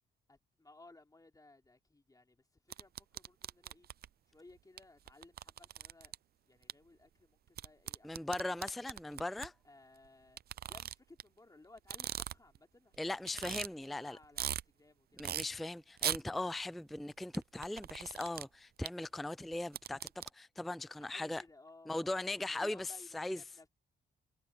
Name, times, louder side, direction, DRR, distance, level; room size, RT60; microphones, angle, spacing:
voice 1, 0.3-3.9 4.3-6.1 6.5-8.1 8.7-9.0 9.6-10.4 10.7-15.3 21.0-23.7, left 2 dB, 20° left, 3.7 m, -60 dB
sound 1, 2.7-4.1 4.8-4.9 5.1-6.1 6.7-6.8 7.6-9.5 10.4-11.2 11.8-12.6 12.9-13.0 13.3-13.7 14.1-14.6 15.2-15.4 16.0-16.2 17.3-18.4 18.8-18.9 19.5-20.3, right 10 dB, 50° right, 0.5 m, -39 dB
voice 2, 8.0-9.5 13.0-14.2 15.2-21.4 21.9-23.4, left 2 dB, ahead, 0.4 m, -39 dB
cardioid pair, 90°, 20 cm